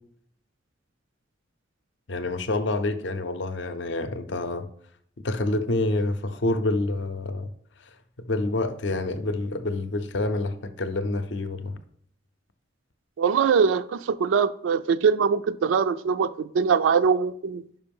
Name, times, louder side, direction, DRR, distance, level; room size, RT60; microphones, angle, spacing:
voice 1, 2.1-4.7 5.2-7.5 8.2-11.7, left 2 dB, 65° left, 0.6 m, -27 dB
voice 2, 13.2-17.6, right 6 dB, 85° right, 0.3 m, -22 dB
5.5 x 5.2 x 5.3 m
head